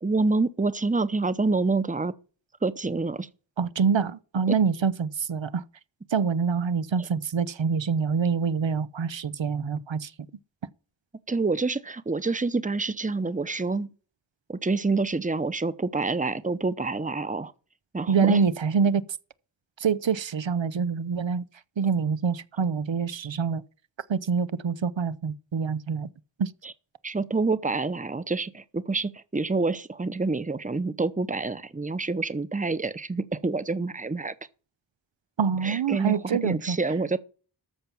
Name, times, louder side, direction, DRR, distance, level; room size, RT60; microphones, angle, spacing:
voice 1, 0.0-2.1 2.6-3.3 4.5-4.6 11.3-13.9 14.5-17.5 17.9-18.4 26.6-26.7 27.0-34.3 35.6-37.2, right 3 dB, 20° right, 0.8 m, -27 dB
voice 2, 3.6-5.6 6.1-10.1 18.1-19.0 19.8-21.4 21.8-23.6 24.1-26.1 26.4-26.5 35.4-36.8, right 6 dB, 85° right, 0.7 m, -25 dB
13.5 x 5.8 x 7.1 m
wide cardioid pair, 55°, 44 cm